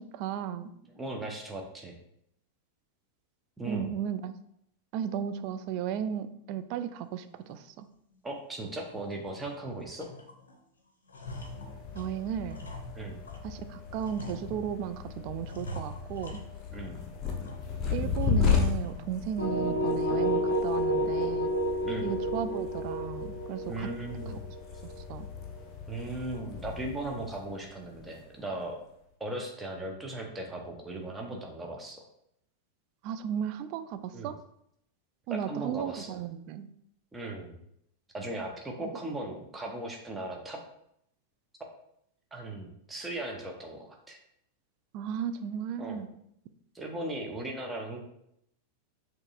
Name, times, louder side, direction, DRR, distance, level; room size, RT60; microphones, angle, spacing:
voice 1, 0.0-0.7 3.7-4.3 4.9-7.9 11.9-12.6 13.4-16.4 17.9-21.5 22.0-23.9 25.1-25.3 33.0-34.4 35.3-36.7 44.9-46.1, right 9 dB, 45° right, 10 dB, 0.3 m, -35 dB
voice 2, 0.8-1.9 3.6-3.9 8.2-10.1 12.9-13.2 16.7-17.0 21.8-22.1 23.7-24.4 25.9-28.8 29.2-32.0 34.1-34.3 35.3-36.2 37.1-37.5 38.1-40.6 42.3-44.2 45.8-46.0 46.7-48.0, right 2 dB, 10° right, 1 dB, 0.8 m, -37 dB
sound 1, 7.5-7.6 8.1-8.2 8.7-9.6 10.0-10.6 10.9-13.5 14.0-15.0 15.4-16.9 17.2-17.9 18.2-18.3 18.8-19.2, equal, 70° left, 0.6 m, -45 dB
sound 2, 11.3-28.7, left 6 dB, 25° left, 0.8 m, -35 dB
sound 3, 19.4-25.2, equal, 70° right, 1.3 m, -30 dB
6.3 x 3.0 x 2.4 m, 0.74 s
figure-of-eight pair, 90°, 0 cm